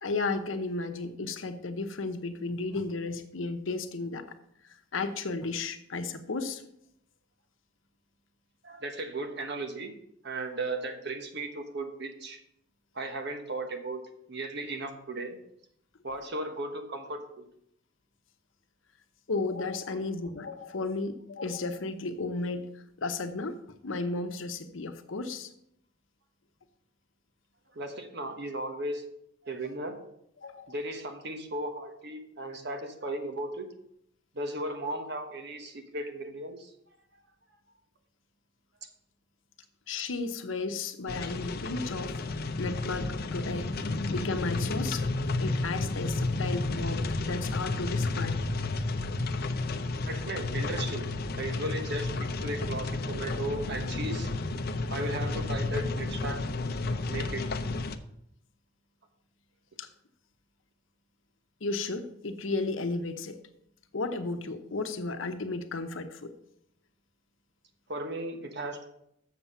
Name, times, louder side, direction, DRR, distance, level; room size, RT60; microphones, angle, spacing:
voice 1, 0.0-4.2 4.9-6.6 19.3-23.6 23.8-25.5 30.4-30.7 39.9-42.2 42.6-43.7 44.1-45.0 45.4-48.4 59.8-59.9 61.6-63.4 63.9-66.3, left 3 dB, 85° left, 8 dB, 0.9 m, -34 dB
voice 2, 8.6-9.9 10.2-12.4 12.9-14.0 14.3-15.4 16.0-17.5 27.7-29.0 29.4-29.9 30.7-33.7 34.3-36.7 50.0-51.1 51.4-54.3 54.9-56.4 57.1-57.4 67.9-68.9, right 2 dB, 60° right, 6 dB, 1.2 m, -36 dB
sound 1, 41.1-58.0, left 2 dB, 55° left, 0.6 m, -32 dB
7.3 x 6.7 x 5.5 m, 0.75 s
head